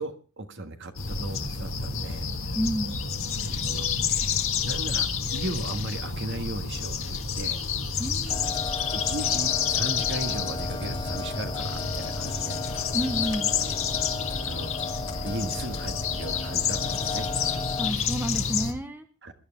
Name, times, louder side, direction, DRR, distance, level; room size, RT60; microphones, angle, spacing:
voice 1, 0.0-2.3 3.7-3.9 4.6-7.6 8.9-12.5 14.4-14.7 15.2-17.3 19.2-19.3, right 1 dB, 55° right, 6 dB, 1.6 m, -36 dB
sound 1, 1.0-18.7, left 6 dB, 65° left, 1.7 m, -29 dB
voice 2, 2.5-3.0 8.0-8.5 12.9-13.5 17.8-19.0, equal, 10° right, 7 dB, 0.8 m, -30 dB
sound 2, 8.3-17.9, left 3 dB, 20° left, 0.6 m, -36 dB
21.5 x 11.0 x 3.5 m, 0.35 s
head